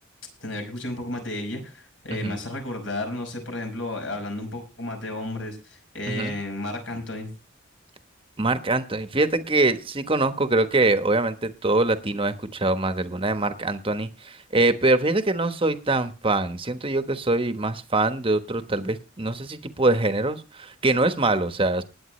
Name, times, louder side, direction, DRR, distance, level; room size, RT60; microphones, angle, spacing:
voice 1, 0.4-7.3, left 1 dB, 65° left, 4 dB, 5.3 m, -32 dB
voice 2, 8.4-21.8, right 2 dB, 25° right, 10 dB, 1.1 m, -24 dB
20.0 x 8.9 x 3.2 m, 0.31 s
head